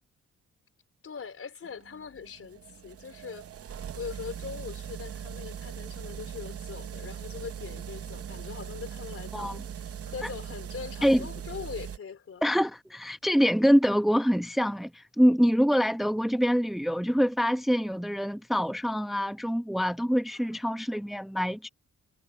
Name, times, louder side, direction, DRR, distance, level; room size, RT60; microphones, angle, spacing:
voice 1, 1.0-3.5 3.9-12.4 20.3-20.9, left 6 dB, 50° left, 4.4 m, -42 dB
sound 1, 1.6-12.0, right 8 dB, 50° right, 1.0 m, -40 dB
voice 2, 12.4-21.7, equal, ahead, 0.9 m, -25 dB
cardioid pair, 110°, 30 cm